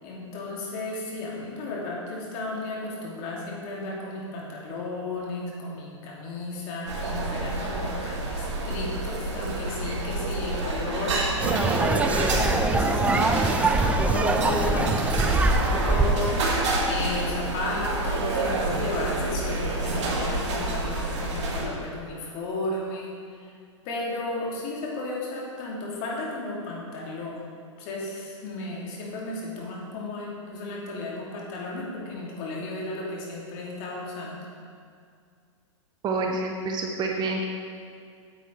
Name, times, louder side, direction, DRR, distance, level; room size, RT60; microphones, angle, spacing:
voice 1, 0.0-23.5 23.8-27.4 27.8-34.5, left 2 dB, 45° left, -3 dB, 2.7 m, -34 dB
sound 1, 6.9-21.6, right 2 dB, 60° right, 2.2 m, -28 dB
sound 2, 11.4-16.4, right 2 dB, 10° right, 0.5 m, -23 dB
voice 2, 36.0-37.4, right 3 dB, 25° right, 1 dB, 0.9 m, -28 dB
9.0 x 8.1 x 4.5 m, 2.2 s
hypercardioid pair, 120°, 16 cm